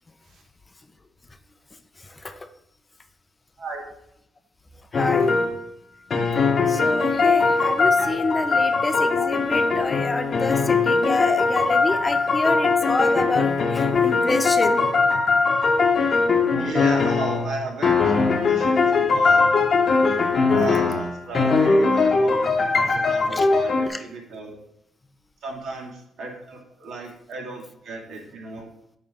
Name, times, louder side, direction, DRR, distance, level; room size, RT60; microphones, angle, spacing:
voice 1, 2.1-2.5 4.9-5.3 6.7-14.8 23.3-23.5 23.9-24.0, left 2 dB, 20° left, 9 dB, 0.6 m, -27 dB
sound 1, 4.9-5.6 6.1-17.6 17.8-23.9, left 4 dB, 45° left, 1.0 m, -20 dB
voice 2, 16.6-19.4 20.5-24.6 25.4-28.7, right 3 dB, 70° right, -2 dB, 2.3 m, -35 dB
8.7 x 3.3 x 5.6 m, 0.77 s
cardioid pair, 90°, 0 cm